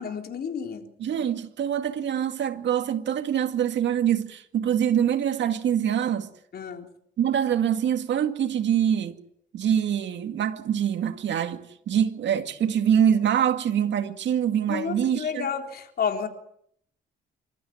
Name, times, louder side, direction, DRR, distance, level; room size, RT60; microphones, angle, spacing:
voice 1, 0.0-0.9 6.5-6.9 14.7-16.3, left 7 dB, 55° left, 3.7 m, -30 dB
voice 2, 1.0-6.3 7.2-9.2 9.5-15.5, right 9 dB, 65° right, 2.2 m, -24 dB
26.0 x 14.0 x 9.5 m
cardioid pair, 90°, 20 cm